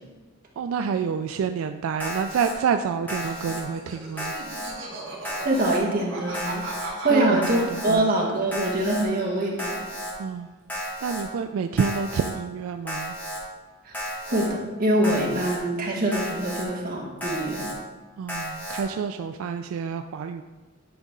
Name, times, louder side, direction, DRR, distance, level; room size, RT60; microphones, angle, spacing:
voice 1, 0.6-4.3 7.1-8.1 10.2-10.5 11.0-13.2 18.2-20.4, right 6 dB, 80° right, 7 dB, 0.3 m, -28 dB
Alarm, 2.0-2.5 3.1-3.6 4.2-4.7 5.2-5.8 6.3-6.9 7.4-8.0 8.5-9.0 9.6-10.1 10.7-11.2 11.8-12.3 12.9-13.4 13.9-14.5 15.0-15.6 16.1-16.6 17.2-17.7 18.3-18.8, equal, 10° left, 1.3 m, -33 dB
Laughter, 3.1-8.9 9.2-10.0, right 3 dB, 65° right, 1.7 m, -39 dB
voice 2, 5.4-6.6 7.0-9.8 13.8-14.0 14.3-17.7, right 1 dB, 45° right, -3 dB, 1.5 m, -24 dB
10.0 x 4.0 x 3.7 m, 1.2 s
head